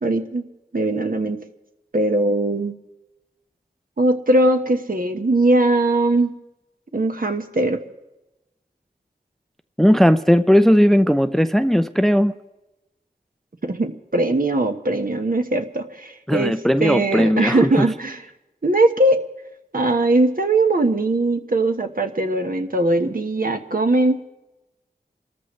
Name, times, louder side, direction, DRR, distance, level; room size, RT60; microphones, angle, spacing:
voice 1, 0.0-0.4 0.7-1.4 1.9-2.7 4.0-6.3 6.9-7.8 13.6-16.5 16.8-18.2 18.6-19.2 19.7-24.2, right 2 dB, 55° right, 6 dB, 1.3 m, -20 dB
voice 2, 9.8-12.3 16.3-17.9, equal, ahead, 11 dB, 0.5 m, -17 dB
27.5 x 13.5 x 3.2 m, 0.99 s
wide cardioid pair, 60°, 17 cm